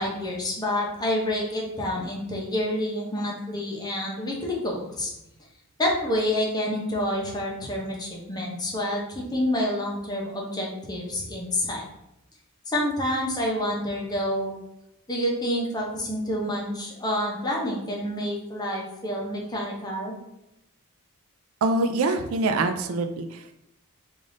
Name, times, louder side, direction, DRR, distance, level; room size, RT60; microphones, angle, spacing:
voice 1, 0.0-5.1 5.8-11.8 12.7-14.5 15.1-20.2, left 1 dB, 20° left, -2 dB, 0.8 m, -28 dB
voice 2, 21.6-23.4, right 2 dB, 65° right, 7 dB, 0.4 m, -24 dB
3.4 x 2.6 x 3.7 m, 0.86 s
head